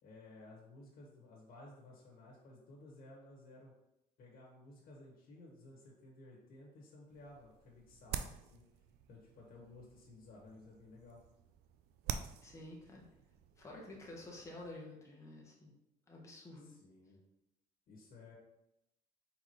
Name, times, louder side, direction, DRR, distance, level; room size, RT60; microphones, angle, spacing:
voice 1, 0.0-3.7 4.2-8.6 9.1-11.2 16.5-17.2 17.9-18.4, left 2 dB, 55° left, -3 dB, 1.4 m, -56 dB
sound 1, 7.1-14.8, right 8 dB, 75° right, 0.4 m, -48 dB
voice 2, 12.4-13.1 13.6-15.7 16.1-16.7, left 2 dB, 15° left, -2 dB, 1.0 m, -50 dB
4.4 x 3.9 x 3.1 m, 0.87 s
cardioid pair, 110°, 17 cm